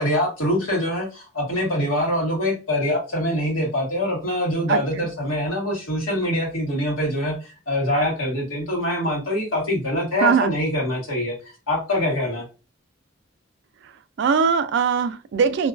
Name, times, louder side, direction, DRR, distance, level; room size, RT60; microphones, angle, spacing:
voice 1, 0.0-7.4 7.7-11.3 11.7-12.4, left 1 dB, 85° left, 1.3 m, -24 dB
voice 2, 4.7-5.1 10.2-10.5 14.2-15.7, right 6 dB, 60° right, 0.3 m, -21 dB
2.6 x 2.3 x 2.4 m
head